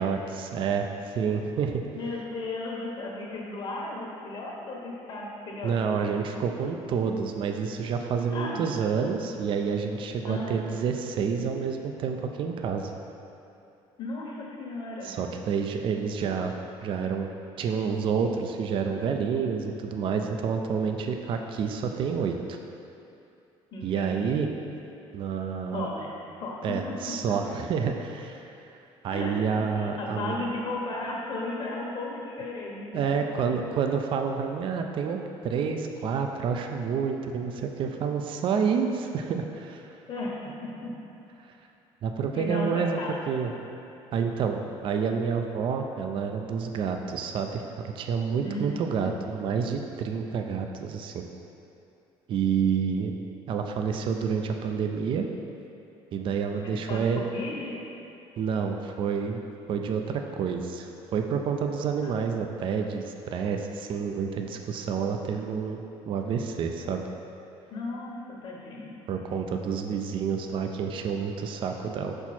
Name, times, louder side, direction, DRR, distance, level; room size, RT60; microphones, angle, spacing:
voice 1, 0.0-1.8 5.6-12.9 15.0-16.5 16.8-17.3 17.6-22.6 23.8-24.5 25.1-25.9 26.6-28.4 29.0-30.3 32.9-39.8 42.0-43.5 44.1-51.2 52.3-53.1 53.5-55.3 56.1-57.2 58.4-59.4 59.7-67.0 69.1-72.2, right 6 dB, 50° right, 4 dB, 0.4 m, -29 dB
voice 2, 1.9-5.8 8.3-8.6 10.2-10.6 14.0-15.1 23.7-24.4 25.7-27.1 29.1-29.4 29.8-33.2 40.1-40.9 42.3-43.5 48.4-49.1 56.6-57.8 62.0-62.1 67.7-68.9, left 2 dB, 45° left, -2 dB, 1.2 m, -35 dB
5.8 x 4.4 x 4.3 m, 2.7 s
cardioid pair, 125°, 11 cm